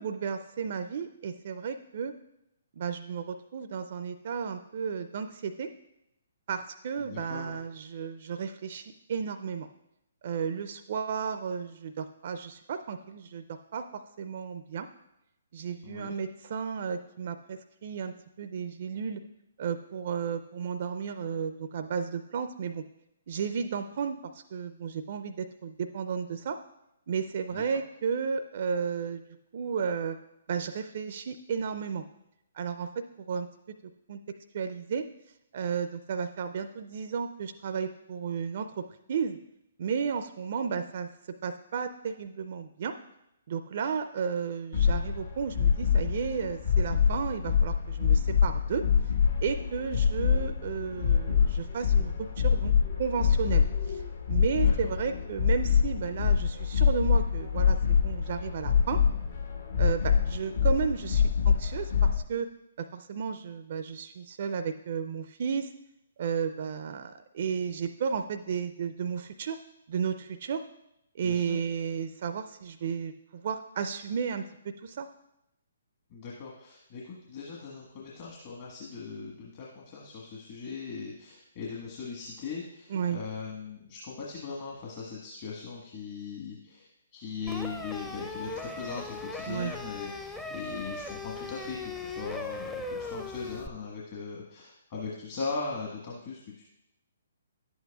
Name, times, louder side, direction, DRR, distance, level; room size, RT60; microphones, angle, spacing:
voice 1, 0.0-2.1 2.8-5.7 6.5-8.8 9.1-9.7 10.2-14.9 15.5-19.2 19.6-22.8 23.3-26.6 27.1-29.2 29.5-30.2 30.5-32.0 32.6-32.9 33.3-33.5 34.1-34.2 34.5-35.1 35.5-38.8 39.1-39.4 39.8-41.1 41.4-42.9 43.5-48.8 49.4-52.7 53.0-54.0 54.3-59.0 59.8-62.5 62.8-65.7 66.2-69.6 69.9-70.6 71.2-74.4 74.8-75.1 82.9-83.2 89.5-89.7, right 6 dB, 50° right, 9 dB, 0.4 m, -33 dB
voice 2, 7.0-7.6 15.8-16.1 27.5-27.6 54.5-54.7 71.2-71.6 76.1-96.6, left 4 dB, 40° left, -4 dB, 1.4 m, -39 dB
sound 1, 44.7-62.2, left 7 dB, 65° left, 1.2 m, -25 dB
sound 2, 87.5-93.7, left 3 dB, 5° left, 0.5 m, -38 dB
11.0 x 8.0 x 2.3 m, 0.85 s
figure-of-eight pair, 135°, 0 cm